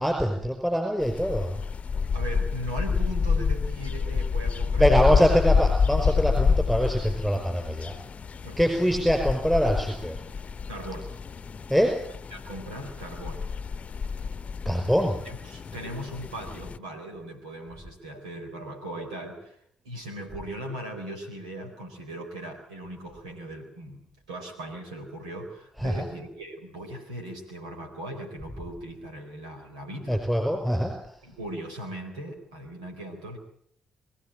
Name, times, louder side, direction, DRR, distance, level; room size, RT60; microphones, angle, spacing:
voice 1, 0.0-1.6 4.8-7.9 8.6-10.2 11.7-11.9 14.7-15.2 25.8-26.1 30.1-31.2, equal, ahead, 4 dB, 5.2 m, -24 dB
sound 1, 1.0-16.8, left 5 dB, 40° left, 0.9 m, -28 dB
voice 2, 2.1-5.2 8.4-8.8 10.7-11.1 12.3-13.5 15.2-19.6 19.8-30.2 31.2-33.4, right 1 dB, 85° right, 3 dB, 4.2 m, -39 dB
23.5 x 15.0 x 8.9 m, 0.67 s
hypercardioid pair, 45°, 3 cm